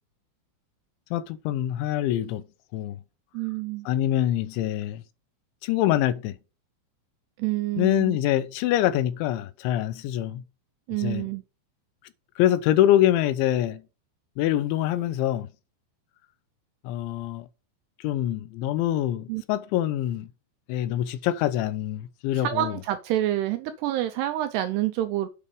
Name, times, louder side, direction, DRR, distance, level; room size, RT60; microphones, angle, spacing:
voice 1, 1.1-2.4 2.7-3.0 3.9-5.0 5.6-6.4 7.8-10.4 11.0-11.3 12.4-13.8 14.4-15.5 16.8-17.5 18.0-20.3 20.7-22.7, left 12 dB, 85° left, 3.0 m, -25 dB
voice 2, 3.3-3.9 7.4-8.2 10.9-11.4 19.3-19.4 22.3-25.3, right 14 dB, 80° right, 2.4 m, -27 dB
8.3 x 5.4 x 5.3 m
omnidirectional pair, 5.4 m